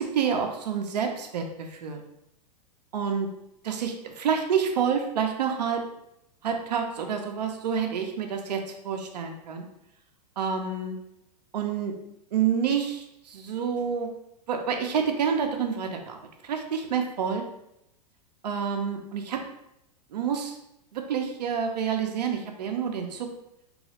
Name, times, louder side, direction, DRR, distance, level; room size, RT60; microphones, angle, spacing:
voice 1, 0.0-2.0 2.9-3.3 3.6-5.8 6.4-9.6 10.4-10.9 11.5-11.9 12.3-14.1 14.5-16.2 16.4-17.4 18.4-19.4 20.1-20.6 20.9-23.3, right 7 dB, 75° right, 4 dB, 0.5 m, -28 dB
3.0 x 2.4 x 2.8 m, 0.82 s
hypercardioid pair, 100°, 21 cm